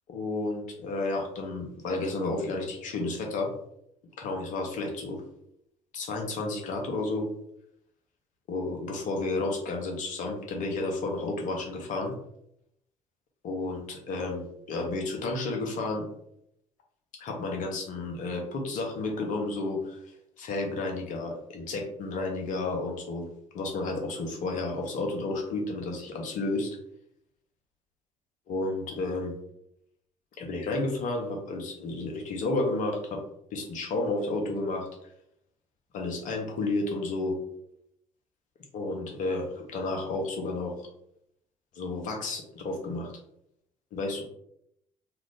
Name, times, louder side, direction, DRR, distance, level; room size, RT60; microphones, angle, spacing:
voice 1, 0.1-3.5 4.2-5.2 5.9-7.3 8.5-12.1 13.4-16.0 17.2-20.0 20.4-23.3 23.5-26.8 28.5-29.3 30.4-33.2 33.5-34.9 35.9-37.4 38.7-40.8 41.7-43.1 43.9-44.2, left 2 dB, 50° left, 1 dB, 0.9 m, -31 dB
2.9 x 2.4 x 3.5 m, 0.76 s
figure-of-eight pair, 50°, 17 cm